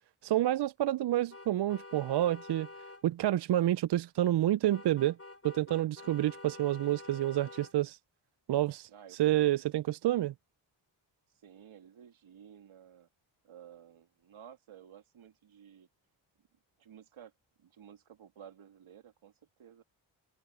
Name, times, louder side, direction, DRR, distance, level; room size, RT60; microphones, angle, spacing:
voice 1, 0.2-2.7 3.0-5.2 5.4-8.0 8.5-8.9 9.2-10.3, right 13 dB, 55° right, 0.5 m, -28 dB
sound 1, 1.3-3.0 4.7-7.7, left 2 dB, 30° left, 4.6 m, -49 dB
voice 2, 8.9-9.5 11.3-13.1 13.4-15.9 16.8-17.3 17.6-19.3 19.6-19.8, right 9 dB, 75° right, 3.0 m, -54 dB
open air
supercardioid pair, 45°, 48 cm